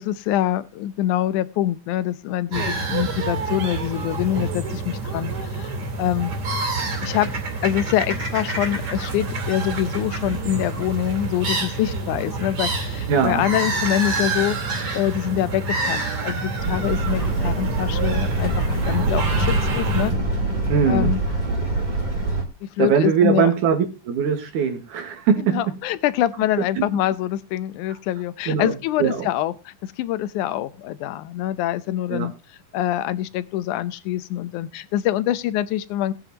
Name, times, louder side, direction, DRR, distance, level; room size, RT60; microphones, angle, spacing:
voice 1, 0.0-5.7 6.0-6.3 7.0-7.3 7.6-14.6 14.9-20.1 20.9-21.2 22.6-23.5 25.5-32.3 32.7-36.1, left 13 dB, 75° left, 2.1 m, -25 dB
sound 1, 2.5-20.1, right 3 dB, 45° right, 3.4 m, -27 dB
voice 2, 13.1-13.5 20.7-21.1 22.8-25.6 26.8-26.9 28.5-29.3 32.1-32.3, right 7 dB, 75° right, 3.0 m, -21 dB
sound 2, 16.6-22.4, right 2 dB, 15° right, 1.8 m, -24 dB
18.0 x 9.1 x 2.9 m
omnidirectional pair, 3.7 m